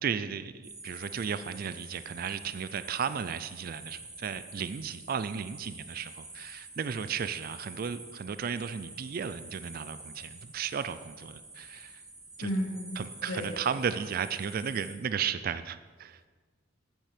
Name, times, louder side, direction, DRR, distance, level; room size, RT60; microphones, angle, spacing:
voice 1, 0.0-12.0 12.4-12.5 13.0-16.2, right 7 dB, 45° right, 13 dB, 0.3 m, -34 dB
sound 1, 0.6-14.9, right 2 dB, 15° right, 1.5 m, -48 dB
voice 2, 12.4-13.5, equal, 90° left, 2 dB, 1.7 m, -34 dB
8.7 x 8.3 x 5.1 m, 1.4 s
head